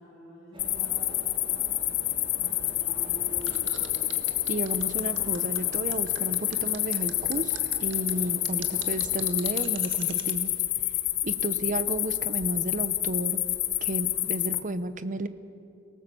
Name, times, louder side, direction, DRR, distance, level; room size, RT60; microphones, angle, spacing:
voice 1, 0.0-1.8 2.4-4.0 11.3-11.8, equal, ahead, -11 dB, 8.0 m, -50 dB
sound 1, 0.5-9.4, equal, 25° right, 3.5 m, -46 dB
sound 2, 0.6-14.6, left 14 dB, 60° left, 1.1 m, -28 dB
sound 3, 3.4-10.3, right 9 dB, 80° right, 2.0 m, -41 dB
voice 2, 4.5-10.5 11.2-13.4 13.8-15.3, right 1 dB, 45° right, 12 dB, 0.9 m, -32 dB
30.0 x 19.0 x 7.0 m, 2.6 s
head